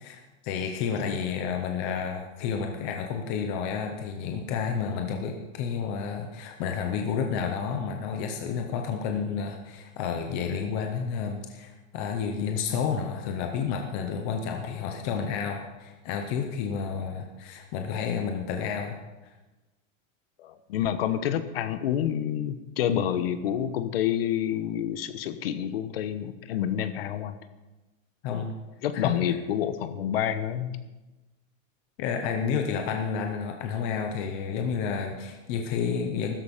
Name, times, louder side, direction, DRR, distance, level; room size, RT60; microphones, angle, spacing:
voice 1, 0.0-19.0 19.2-19.3 28.2-28.5 28.9-29.1 32.0-36.3, left 6 dB, 15° left, 4 dB, 0.5 m, -30 dB
voice 2, 20.4-27.4 28.3-28.4 28.8-30.8, left 10 dB, 45° left, 11 dB, 1.2 m, -28 dB
15.5 x 13.0 x 5.2 m, 1.1 s
supercardioid pair, 175°, 39 cm